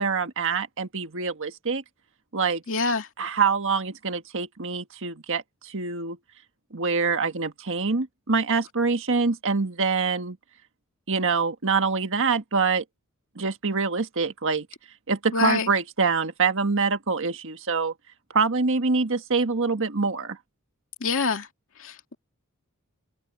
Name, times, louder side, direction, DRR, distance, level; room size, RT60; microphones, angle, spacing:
voice 1, 0.0-1.8 2.3-2.6 3.2-6.2 6.7-10.4 11.1-12.8 13.3-14.7 15.1-17.9 18.3-20.4, right 4 dB, 65° right, 1.6 m, -25 dB
voice 2, 2.7-3.1 15.3-15.7 21.0-21.5 21.8-22.1, left 4 dB, 65° left, 2.6 m, -25 dB
head